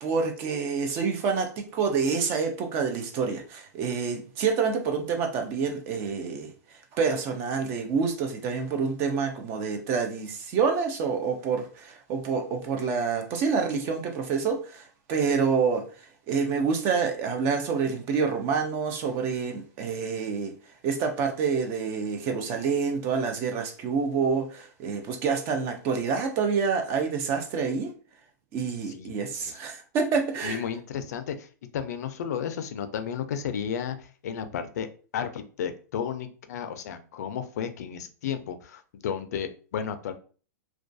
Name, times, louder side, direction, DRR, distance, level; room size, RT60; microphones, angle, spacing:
voice 1, 0.0-6.5 6.9-14.8 15.1-15.9 16.3-20.5 20.8-27.9 28.5-30.6, right 5 dB, 25° right, 0.3 m, -27 dB
voice 2, 28.9-29.6 30.4-31.5 31.7-34.9 35.1-40.1, left 8 dB, 65° left, 0.4 m, -33 dB
2.3 x 2.2 x 2.5 m
hypercardioid pair, 160°, 9 cm